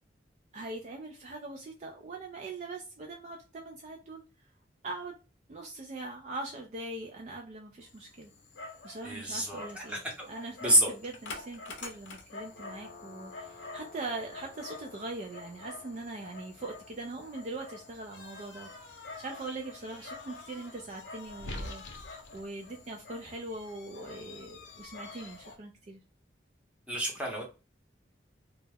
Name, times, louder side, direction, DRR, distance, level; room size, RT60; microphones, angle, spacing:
voice 1, 0.5-4.2 4.8-5.1 5.5-8.3 8.8-10.0 10.3-18.9 19.2-26.0, right 2 dB, 40° right, 2 dB, 0.3 m, -41 dB
Dog, 7.8-25.6, left 3 dB, 85° left, 0.6 m, -46 dB
voice 2, 9.0-10.1 10.6-10.9 26.9-27.4, equal, 5° right, -2 dB, 0.7 m, -28 dB
2.3 x 2.0 x 3.2 m, 0.31 s
head